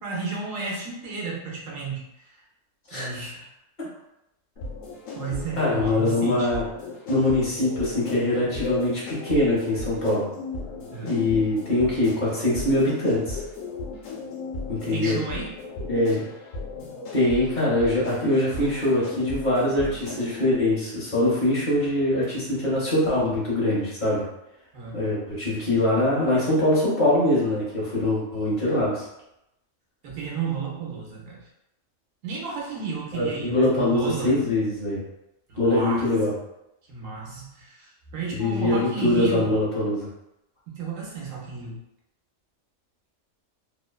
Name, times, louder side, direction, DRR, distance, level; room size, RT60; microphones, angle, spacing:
voice 1, 0.0-2.3 2.9-3.4 5.1-6.5 10.9-11.1 14.8-15.5 24.7-25.0 30.0-31.4 32.2-34.5 35.5-36.0 36.9-39.5 40.7-41.8, right 5 dB, 90° right, -3 dB, 1.1 m, -32 dB
sound 1, 4.6-20.6, left 3 dB, 85° left, 1.0 m, -36 dB
voice 2, 5.6-6.6 7.1-10.3 11.0-13.4 14.7-15.2 15.9-16.2 17.1-24.3 24.9-29.1 33.1-35.0 35.6-36.3 38.3-40.1, left 1 dB, 45° left, -7 dB, 0.8 m, -23 dB
3.0 x 2.1 x 2.2 m, 0.86 s
omnidirectional pair, 1.3 m